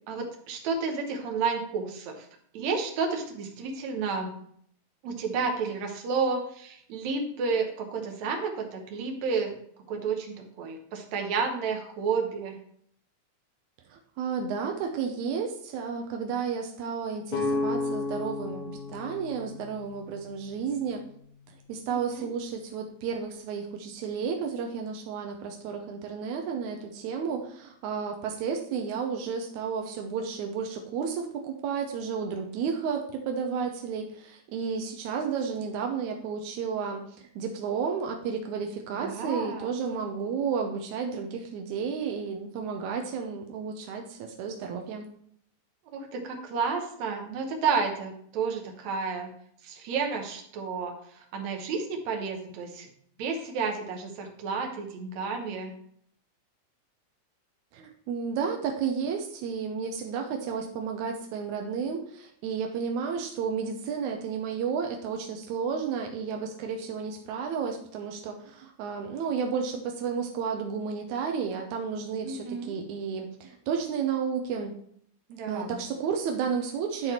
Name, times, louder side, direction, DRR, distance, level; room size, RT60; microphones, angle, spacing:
voice 1, 0.1-2.3 2.5-4.3 5.0-9.6 9.9-12.6 22.1-22.3 38.9-39.7 45.9-49.3 49.6-52.9 53.2-55.7 72.2-72.7 75.3-75.8, right 5 dB, 70° right, 3 dB, 2.4 m, -31 dB
voice 2, 13.9-21.0 21.7-45.1 57.7-74.8 75.5-77.1, right 6 dB, 90° right, 2 dB, 2.1 m, -32 dB
sound 1, 17.3-21.1, left 3 dB, 90° left, 2.8 m, -33 dB
10.5 x 4.0 x 4.4 m, 0.65 s
omnidirectional pair, 3.3 m